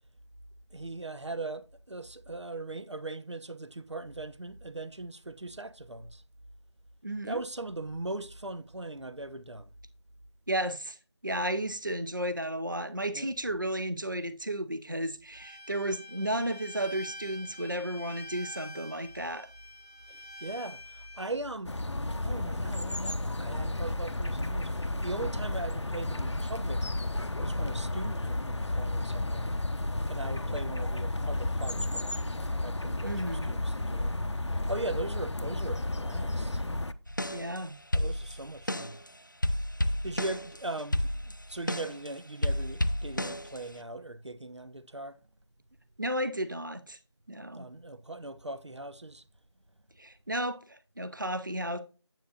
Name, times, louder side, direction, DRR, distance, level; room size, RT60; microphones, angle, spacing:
voice 1, 0.7-6.2 7.3-9.7 13.1-13.3 20.1-21.8 22.2-26.9 27.4-29.6 30.1-32.3 32.6-34.1 34.5-36.7 37.9-39.0 40.0-45.2 47.5-49.3, right 2 dB, 90° right, 0.9 m, -39 dB
voice 2, 7.0-7.4 10.5-11.0 11.2-19.5 33.0-33.5 37.3-37.8 46.0-47.0 47.3-47.7 50.0-51.8, right 1 dB, 45° right, 0.7 m, -33 dB
Bowed string instrument, 15.3-21.3, left 1 dB, 60° right, 3.0 m, -46 dB
sound 1, 21.6-36.9, left 1 dB, 80° left, 0.8 m, -32 dB
sound 2, 37.1-37.6 37.9-39.1 39.4-42.1 42.4-43.8, left 1 dB, 45° left, 0.5 m, -31 dB
9.2 x 8.3 x 2.5 m
figure-of-eight pair, 180°, 14 cm